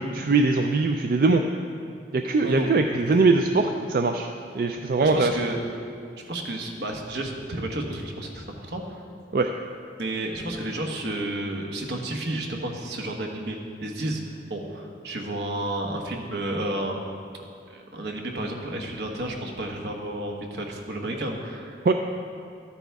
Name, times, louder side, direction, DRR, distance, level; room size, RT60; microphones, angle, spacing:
voice 1, 0.0-1.4 2.1-4.3 4.5-5.3 9.3-9.5 21.9-22.0, right 3 dB, 55° right, 5 dB, 0.4 m, -21 dB
voice 2, 2.4-3.2 5.0-5.6 6.2-9.0 9.9-17.0 17.7-21.9, right 1 dB, 75° right, 2 dB, 1.2 m, -31 dB
12.5 x 9.1 x 3.5 m, 2.4 s
head